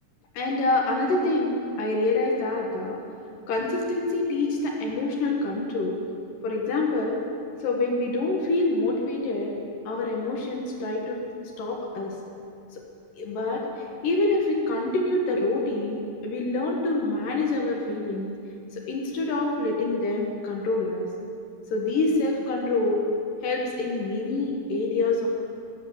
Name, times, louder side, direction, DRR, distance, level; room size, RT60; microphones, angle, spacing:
voice 1, 0.3-3.0 3.5-6.0 6.4-7.2 7.6-9.5 9.9-11.2 11.6-12.2 12.7-12.8 13.2-18.4 18.7-21.1 21.7-23.1 23.4-25.3, left 2 dB, 85° left, -1 dB, 3.1 m, -26 dB
20.0 x 7.9 x 7.2 m, 2.5 s
omnidirectional pair, 3.7 m